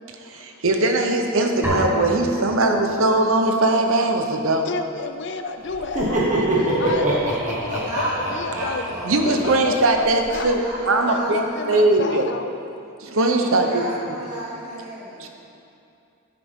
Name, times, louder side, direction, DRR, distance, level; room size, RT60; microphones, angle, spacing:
voice 1, 0.3-4.7 9.0-11.4 11.7-12.3 13.0-13.8 15.2-15.3, right 2 dB, 65° right, 4 dB, 0.8 m, -20 dB
sound 1, 1.6-3.4, equal, 10° right, 1.6 m, -29 dB
voice 2, 4.6-6.5 6.8-8.8 9.2-10.6 11.0-12.5, left 3 dB, 50° left, 7 dB, 0.6 m, -31 dB
Laughter, 5.7-10.4, right 1 dB, 35° right, 1.5 m, -25 dB
voice 3, 6.1-7.3 7.6-9.3 10.3-12.1 13.5-15.3, right 1 dB, 90° right, -7 dB, 1.9 m, -33 dB
11.0 x 9.5 x 3.6 m, 2.7 s
head